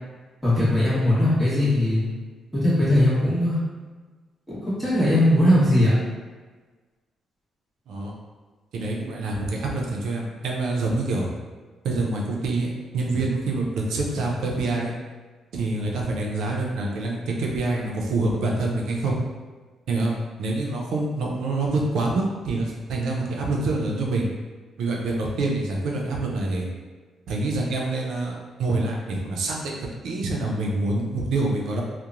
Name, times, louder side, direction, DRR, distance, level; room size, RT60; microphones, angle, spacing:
voice 1, 0.4-2.0 2.5-3.6 4.5-6.0, left 1 dB, 5° right, -11 dB, 1.2 m, -19 dB
voice 2, 8.7-11.3 11.8-14.9 15.5-19.2 19.9-24.3 24.8-26.7 27.3-31.8, right 2 dB, 75° right, -1 dB, 0.5 m, -26 dB
2.9 x 2.1 x 2.5 m, 1.4 s
cardioid pair, 130°, 0 cm